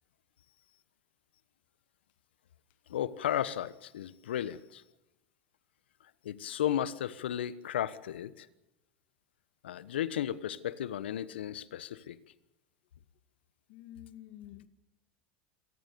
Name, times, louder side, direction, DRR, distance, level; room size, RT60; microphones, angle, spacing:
voice 1, 2.9-4.8 6.0-8.5 9.6-12.2, left 11 dB, 85° left, 1.2 m, -34 dB
voice 2, 13.7-14.7, left 12 dB, 65° left, 1.7 m, -49 dB
26.0 x 18.5 x 7.0 m
hypercardioid pair, 95°, 6 cm